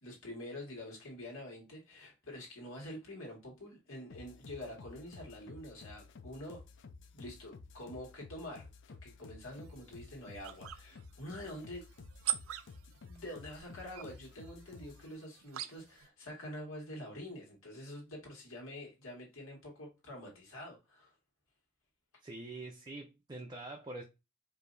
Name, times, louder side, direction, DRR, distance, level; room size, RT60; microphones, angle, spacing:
voice 1, 0.0-6.6 7.1-11.9 13.1-21.1, left 1 dB, 75° left, 1.9 m, -46 dB
sound 1, 4.1-15.1, left 4 dB, 60° left, 0.4 m, -53 dB
sound 2, 9.5-16.1, right 12 dB, 90° right, 0.4 m, -44 dB
voice 2, 22.2-24.0, right 2 dB, 20° right, 0.5 m, -45 dB
4.8 x 2.7 x 2.6 m
head